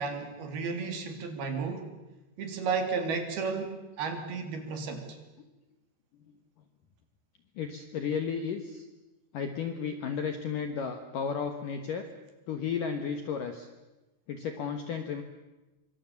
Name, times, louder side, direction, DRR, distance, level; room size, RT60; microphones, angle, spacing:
voice 1, 0.0-1.8 2.4-5.0, right 5 dB, 60° right, 6 dB, 4.3 m, -33 dB
voice 2, 7.6-8.9 9.3-12.1 12.5-13.7 14.3-15.2, left 6 dB, 65° left, 7 dB, 2.2 m, -33 dB
25.5 x 24.5 x 7.2 m, 1.1 s
omnidirectional pair, 5.5 m